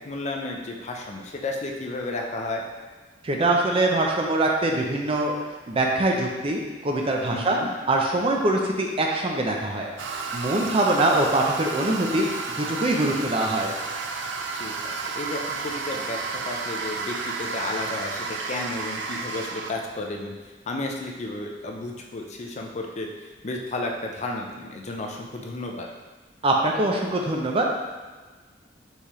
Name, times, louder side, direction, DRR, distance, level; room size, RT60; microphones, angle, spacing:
voice 1, 0.0-2.6 7.3-7.7 10.6-10.7 14.6-20.3 20.7-25.9, left 2 dB, 40° left, 1 dB, 0.5 m, -33 dB
voice 2, 3.2-5.3 5.7-7.6 7.9-9.9 10.3-12.3 12.6-13.7 26.4-27.6, right 2 dB, 30° right, 0 dB, 0.5 m, -23 dB
Toilet flush, 10.0-19.7, right 4 dB, 85° right, 0.4 m, -32 dB
4.5 x 3.4 x 3.0 m, 1.3 s
head